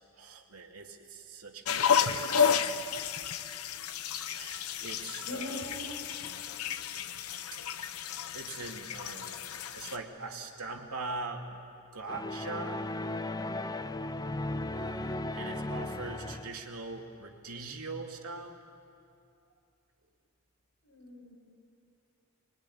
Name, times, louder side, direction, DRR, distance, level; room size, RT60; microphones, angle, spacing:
voice 1, 0.0-2.8 4.3-5.7 8.3-9.4 9.7-11.6 11.9-12.9 14.7-18.6, right 3 dB, 90° right, 2 dB, 2.7 m, -42 dB
sound 1, 1.7-10.0, left 7 dB, 85° left, 0.9 m, -32 dB
voice 2, 5.3-6.0 20.8-21.4, left 1 dB, 70° left, -5 dB, 6.7 m, -41 dB
sound 2, 12.1-16.7, left 2 dB, 15° left, 0.6 m, -36 dB
25.0 x 22.5 x 9.9 m, 2.6 s
head